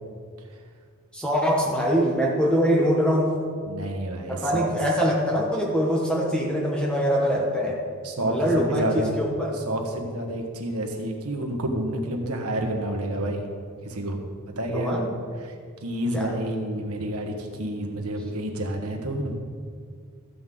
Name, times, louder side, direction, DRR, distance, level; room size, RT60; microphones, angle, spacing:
voice 1, 1.1-3.4 4.3-7.8 8.3-9.6 14.7-15.1 16.1-16.3, equal, 5° left, -2 dB, 1.1 m, -23 dB
voice 2, 3.6-4.7 8.0-9.2 9.5-13.5 13.8-14.3 14.6-15.0 15.4-15.6 15.8-19.4, right 1 dB, 90° right, 2 dB, 1.5 m, -29 dB
14.0 x 8.2 x 3.9 m, 2.1 s
head